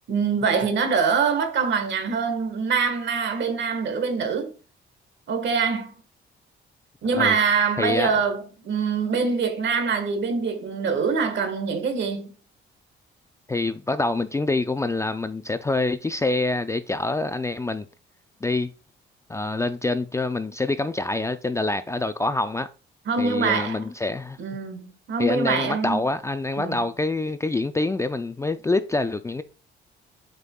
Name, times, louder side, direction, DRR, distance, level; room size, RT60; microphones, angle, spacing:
voice 1, 0.1-4.5 5.3-5.9 7.0-12.3 23.1-23.8 24.4-26.0 26.6-26.8, right 5 dB, 65° right, 1.5 m, -24 dB
voice 2, 7.8-8.2 13.5-17.9 18.4-18.7 19.3-22.7 23.2-24.4 25.2-29.4, left 2 dB, 15° left, 0.4 m, -26 dB
8.0 x 5.3 x 2.3 m
cardioid pair, 90°, 20 cm